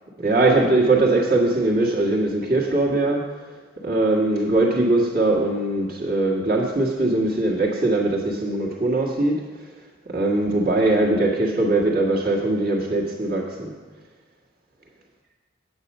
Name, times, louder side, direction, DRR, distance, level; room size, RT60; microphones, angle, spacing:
voice 1, 0.2-3.3 3.8-9.4 10.1-13.7, right 2 dB, 45° right, 1.7 m, -21 dB
8.8 x 8.0 x 5.4 m
head